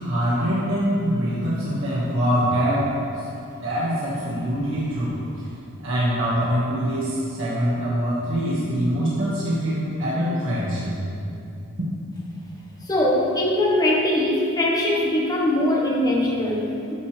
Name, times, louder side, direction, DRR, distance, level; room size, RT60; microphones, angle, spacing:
voice 1, 0.0-2.9 3.6-5.2 5.8-10.9, equal, 65° right, -8 dB, 1.7 m, -24 dB
voice 2, 12.8-16.9, left 1 dB, 20° left, -3 dB, 1.3 m, -21 dB
14.0 x 6.6 x 3.3 m, 2.5 s
head